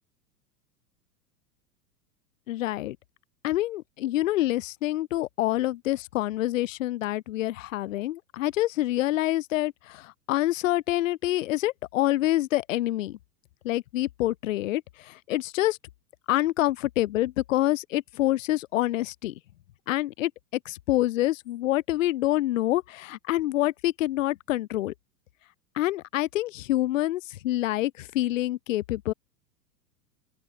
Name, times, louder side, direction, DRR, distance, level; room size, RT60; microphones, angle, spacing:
voice 1, 2.5-3.0 3.4-13.2 13.6-15.8 16.3-19.3 19.9-20.3 20.7-24.9 25.8-29.1, left 15 dB, 55° left, 0.5 m, -27 dB
open air
figure-of-eight pair, 95°, 47 cm